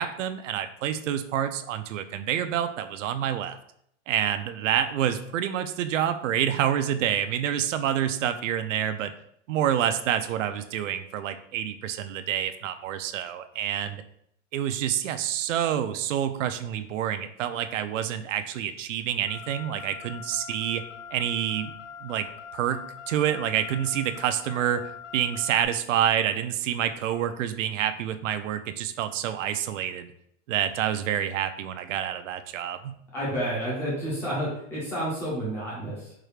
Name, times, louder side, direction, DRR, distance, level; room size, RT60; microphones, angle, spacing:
voice 1, 0.0-3.6 4.1-9.1 9.5-14.0 14.5-20.8 21.1-21.7 22.0-22.3 22.5-30.1 30.5-33.0, right 10 dB, 80° right, 10 dB, 0.5 m, -28 dB
Car, 19.3-25.7, left 7 dB, 75° left, 0.6 m, -42 dB
voice 2, 33.1-36.1, right 1 dB, 5° left, -7 dB, 0.4 m, -30 dB
4.7 x 2.4 x 3.2 m, 0.70 s
supercardioid pair, 170°, 37 cm